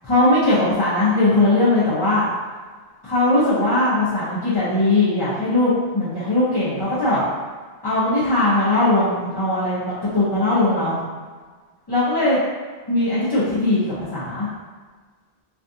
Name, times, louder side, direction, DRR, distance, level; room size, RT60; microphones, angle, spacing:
voice 1, 0.0-2.3 3.0-7.2 7.8-11.0 11.9-12.4 12.9-14.5, left 2 dB, 30° left, -12 dB, 0.6 m, -19 dB
3.3 x 2.4 x 2.6 m, 1.5 s
omnidirectional pair, 1.0 m